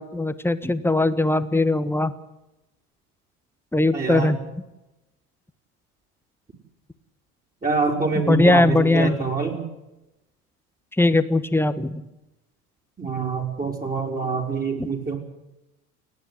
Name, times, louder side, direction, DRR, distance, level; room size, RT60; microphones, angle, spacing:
voice 1, 0.0-2.1 3.7-4.4 8.3-9.2 11.0-12.0, left 2 dB, 5° left, 12 dB, 1.3 m, -20 dB
voice 2, 3.9-4.4 7.6-9.6 13.0-15.2, right 4 dB, 20° right, 0 dB, 4.7 m, -25 dB
29.5 x 10.0 x 9.7 m, 0.95 s
figure-of-eight pair, 70°, 46 cm